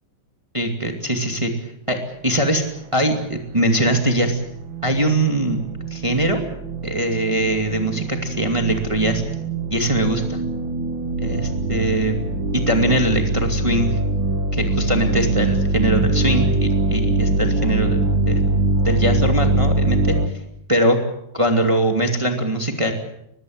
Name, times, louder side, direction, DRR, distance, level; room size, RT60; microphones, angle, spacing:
voice 1, 0.5-1.5 1.9-2.6 2.9-4.4 4.8-6.4 6.8-9.2 9.7-10.4 11.2-12.3 12.5-14.0 14.5-18.5 18.8-20.2 20.7-21.0 21.3-22.9, right 1 dB, 20° right, 4 dB, 0.8 m, -21 dB
sound 1, 3.9-20.3, right 2 dB, 50° right, 1.4 m, -23 dB
23.5 x 20.5 x 8.0 m, 0.79 s
omnidirectional pair, 5.2 m